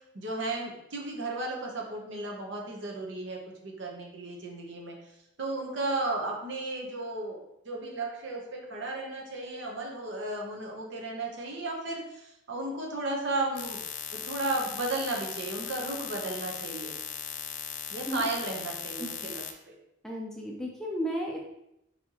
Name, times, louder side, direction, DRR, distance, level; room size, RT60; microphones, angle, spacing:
voice 1, 0.1-4.9 5.4-7.4 7.6-13.8 14.1-16.9 17.9-19.8, right 2 dB, 60° right, 0 dB, 0.9 m, -34 dB
sound 1, 13.6-19.5, left 9 dB, 70° left, 0.4 m, -38 dB
voice 2, 20.0-21.4, equal, 5° left, -2 dB, 0.5 m, -33 dB
4.3 x 4.2 x 2.9 m, 0.83 s
head